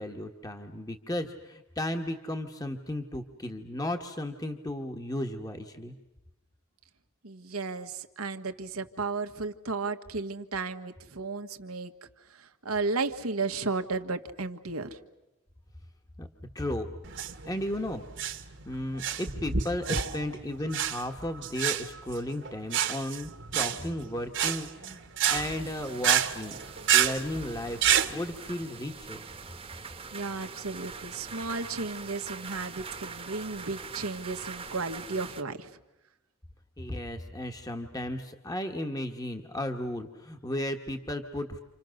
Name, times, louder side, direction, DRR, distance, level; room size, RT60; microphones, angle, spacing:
voice 1, 0.0-5.9 16.2-16.3 16.5-16.9 17.4-18.0 18.6-26.6 26.9-29.2 36.8-41.6, left 1 dB, 15° left, 5 dB, 1.4 m, -34 dB
voice 2, 7.2-11.9 12.3-15.0 30.1-35.7, right 3 dB, 90° right, 7 dB, 1.6 m, -34 dB
sound 1, 17.0-28.1, right 9 dB, 55° right, 1.6 m, -29 dB
sound 2, 25.4-35.4, right 5 dB, 25° right, 1.3 m, -43 dB
30.0 x 27.5 x 6.5 m, 0.99 s
head